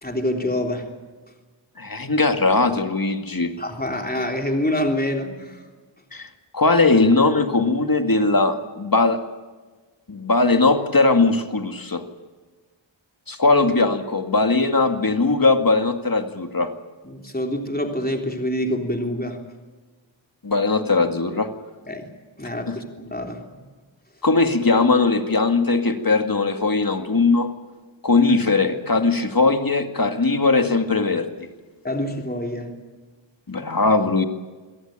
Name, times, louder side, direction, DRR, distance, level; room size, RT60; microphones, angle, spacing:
voice 1, 0.0-0.9 3.6-5.6 17.0-19.4 21.9-22.1 22.4-23.4 31.8-32.7, left 1 dB, 20° left, 3 dB, 3.6 m, -26 dB
voice 2, 1.8-3.6 6.1-9.2 10.1-12.0 13.3-16.7 20.4-21.5 22.7-22.8 24.2-27.6 28.0-31.4 33.5-34.2, left 3 dB, 45° left, 6 dB, 2.2 m, -19 dB
27.0 x 18.0 x 9.0 m, 1.3 s
wide cardioid pair, 40°, 47 cm